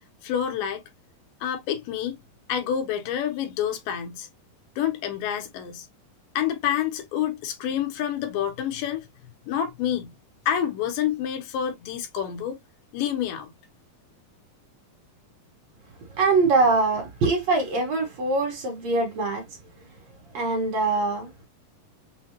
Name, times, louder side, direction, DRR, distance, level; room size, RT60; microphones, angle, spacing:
voice 1, 0.2-0.8 1.4-2.2 2.5-4.3 4.8-5.9 6.4-9.1 9.5-10.1 10.5-12.6 12.9-13.5, left 9 dB, 75° left, 2.4 m, -28 dB
voice 2, 16.2-19.4 20.3-21.3, right 3 dB, 60° right, 2.2 m, -23 dB
6.5 x 2.2 x 2.8 m
omnidirectional pair, 4.1 m